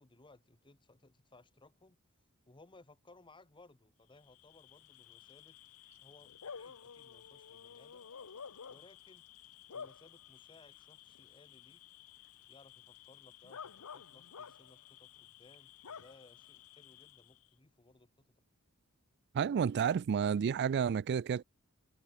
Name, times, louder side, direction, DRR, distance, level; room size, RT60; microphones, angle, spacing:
voice 1, 0.0-2.0 2.5-5.6 6.0-8.1 8.7-9.2 9.7-11.8 12.5-18.3, left 2 dB, 20° left, 1.2 m, -62 dB
Bark / Cricket, 4.2-17.5, left 7 dB, 75° left, 0.8 m, -52 dB
voice 2, 19.3-21.4, right 7 dB, 50° right, 0.3 m, -30 dB
head